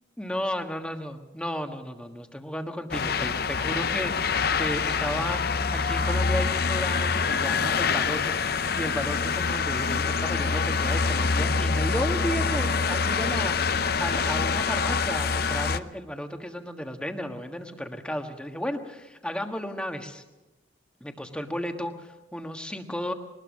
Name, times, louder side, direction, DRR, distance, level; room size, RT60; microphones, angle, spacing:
voice 1, 0.2-20.2 21.0-23.1, equal, 5° left, 5 dB, 1.4 m, -34 dB
sound 1, 2.9-15.8, left 5 dB, 50° left, 0.7 m, -26 dB
21.5 x 20.0 x 6.4 m, 1.1 s
head